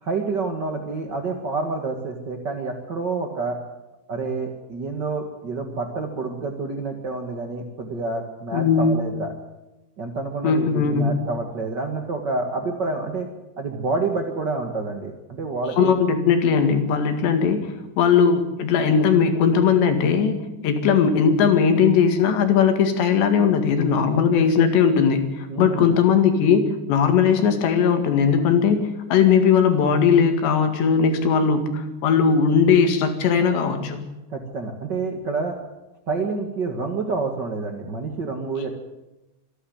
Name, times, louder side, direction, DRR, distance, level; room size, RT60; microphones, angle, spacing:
voice 1, 0.0-3.6 4.1-9.3 10.0-13.3 13.6-16.0 25.5-25.9 34.3-35.5 36.1-38.7, right 3 dB, 70° right, 3 dB, 1.0 m, -28 dB
voice 2, 8.5-9.0 10.4-11.1 15.8-34.1, left 6 dB, 75° left, 7 dB, 4.2 m, -19 dB
26.0 x 11.5 x 9.5 m, 1.0 s
omnidirectional pair, 5.2 m